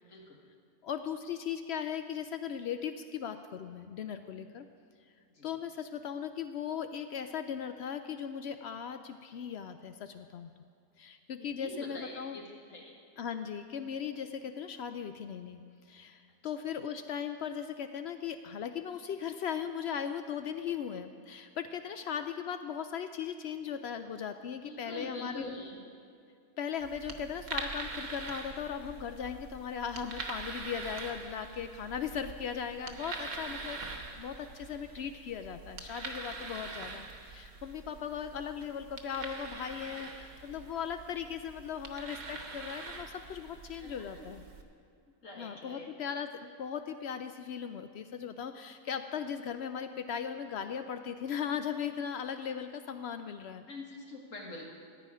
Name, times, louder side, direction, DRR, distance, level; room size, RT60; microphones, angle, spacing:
voice 1, 0.8-4.7 5.4-10.5 11.0-12.4 13.2-15.6 15.9-25.5 26.6-44.4 45.4-53.6, left 7 dB, 80° left, 9 dB, 0.5 m, -38 dB
voice 2, 11.4-12.4 12.7-12.9 24.6-25.8 43.8-44.3 45.2-45.9 53.7-54.7, left 2 dB, 55° left, -1 dB, 2.0 m, -44 dB
sound 1, 26.8-44.6, right 3 dB, 55° right, 1.3 m, -44 dB
15.0 x 9.9 x 4.9 m, 2.5 s
omnidirectional pair, 1.7 m